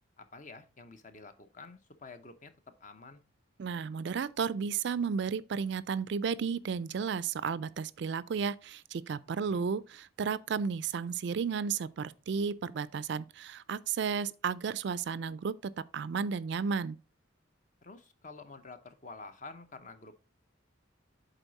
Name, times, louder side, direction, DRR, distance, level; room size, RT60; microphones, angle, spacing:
voice 1, 0.2-2.5 2.8-3.2 9.3-9.6 17.8-20.1, left 3 dB, 40° left, 0.7 m, -49 dB
voice 2, 3.6-17.0, right 6 dB, 60° right, 0.3 m, -33 dB
8.1 x 3.9 x 4.0 m
head